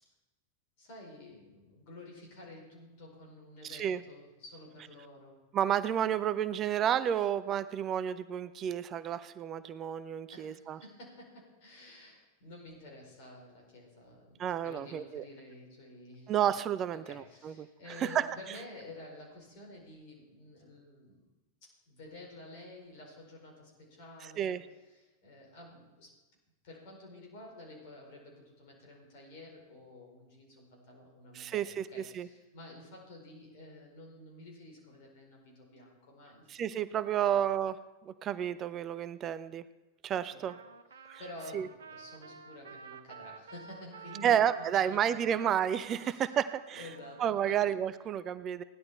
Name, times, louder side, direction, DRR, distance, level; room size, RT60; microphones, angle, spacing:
voice 1, 0.8-5.4 10.3-16.3 16.9-21.3 21.6-26.2 26.6-36.6 37.2-37.4 40.3-40.5 40.9-45.0 45.2-45.4 45.9-46.3 46.7-47.7, left 1 dB, 50° left, 0 dB, 4.8 m, -51 dB
voice 2, 3.6-4.0 5.5-10.8 14.4-15.2 16.3-17.7 18.0-18.3 24.4-24.6 31.3-32.3 36.5-39.6 40.0-40.6 41.1-41.2 41.5-41.7 44.2-46.8 47.2-48.6, right 9 dB, 30° right, 15 dB, 0.5 m, -31 dB
Trumpet, 40.5-47.6, right 6 dB, 65° right, 0.7 m, -51 dB
16.5 x 11.0 x 4.3 m, 1.1 s
figure-of-eight pair, 90°, 0 cm